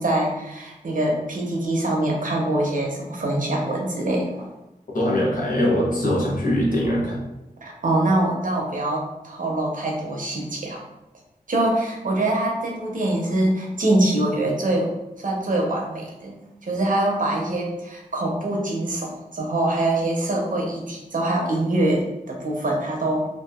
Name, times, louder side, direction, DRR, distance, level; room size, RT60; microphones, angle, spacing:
voice 1, 0.0-4.5 7.6-10.8 11.5-14.9 15.2-16.3 16.6-23.3, right 1 dB, 55° right, -1 dB, 0.7 m, -24 dB
voice 2, 4.9-7.2, left 1 dB, 55° left, -4 dB, 1.0 m, -22 dB
2.7 x 2.5 x 2.3 m, 0.95 s
cardioid pair, 40°, 16 cm